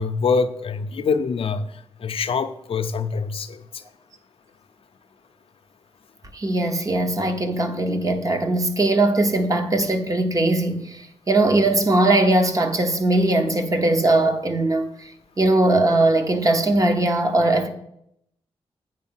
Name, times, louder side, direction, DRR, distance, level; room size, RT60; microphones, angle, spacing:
voice 1, 0.0-1.7 2.0-3.6, left 5 dB, 60° left, 0.5 m, -24 dB
voice 2, 6.3-14.9 15.4-17.7, right 2 dB, 35° right, 0.8 m, -20 dB
7.9 x 5.2 x 5.6 m
wide cardioid pair, 170°, 11 cm